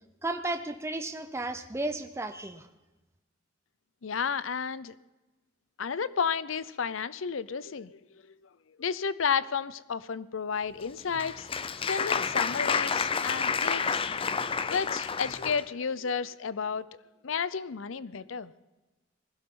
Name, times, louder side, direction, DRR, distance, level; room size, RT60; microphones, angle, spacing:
voice 1, 0.2-2.7, right 2 dB, 15° right, 8 dB, 0.6 m, -33 dB
voice 2, 4.0-4.9 5.8-7.9 8.8-11.5 11.9-14.0 14.7-16.9 17.2-18.5, left 6 dB, 80° left, 17 dB, 0.6 m, -32 dB
Applause, 10.8-15.6, left 5 dB, 30° left, 0.5 m, -29 dB
20.5 x 16.0 x 3.8 m, 1.1 s
head